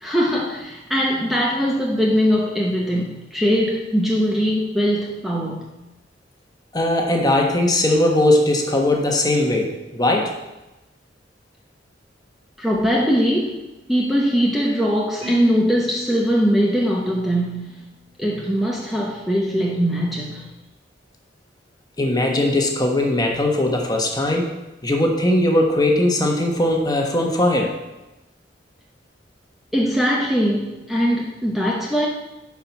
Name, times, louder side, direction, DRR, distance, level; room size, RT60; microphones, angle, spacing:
voice 1, 0.0-5.7 12.6-13.6 13.9-17.8 18.2-20.5 29.7-32.1, equal, ahead, -3 dB, 0.9 m, -21 dB
voice 2, 6.7-10.4 22.0-24.6 24.8-27.7, left 1 dB, 20° left, 1 dB, 1.3 m, -19 dB
Marimba xylophone, 15.2-17.4, left 4 dB, 30° right, 2.5 m, -33 dB
10.5 x 4.9 x 5.9 m, 1.0 s
head